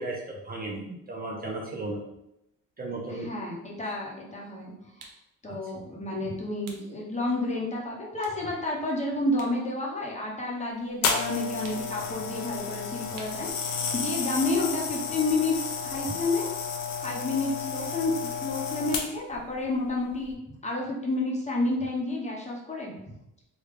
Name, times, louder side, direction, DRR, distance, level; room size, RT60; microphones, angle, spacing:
voice 1, 0.0-2.0 2.8-3.3 5.5-5.6, right 2 dB, 30° right, -3 dB, 0.6 m, -35 dB
voice 2, 3.1-4.7 5.4-15.6 15.8-16.5 17.0-18.1 18.4-20.4 20.6-22.9, left 2 dB, 20° left, -3 dB, 0.8 m, -30 dB
sound 1, 5.0-5.3 6.6-6.9 7.4-7.5 8.2-9.6 9.9-11.0 11.6-12.0 13.1-13.5, right 4 dB, 85° right, 0.7 m, -49 dB
sound 2, 11.0-19.4 20.1-20.3, left 5 dB, 80° left, 0.6 m, -32 dB
3.3 x 2.3 x 3.6 m, 0.85 s
cardioid pair, 110°, 32 cm